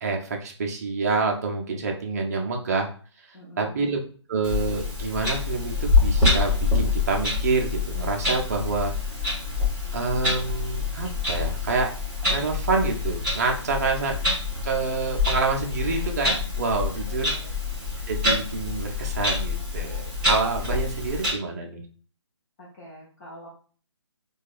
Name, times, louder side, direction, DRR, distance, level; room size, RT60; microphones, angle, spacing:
voice 1, 0.0-2.9 3.3-4.0 4.3-8.9 9.9-11.9 12.3-14.1 14.6-17.3 18.1-21.8, right 4 dB, 35° right, 2 dB, 0.5 m, -27 dB
voice 2, 3.3-3.9 17.1-17.5 22.6-23.5, equal, 25° left, -6 dB, 0.6 m, -45 dB
Clock, 4.4-21.3, left 3 dB, 5° right, 1.1 m, -26 dB
4.5 x 2.3 x 2.4 m, 0.42 s
figure-of-eight pair, 145°, 15 cm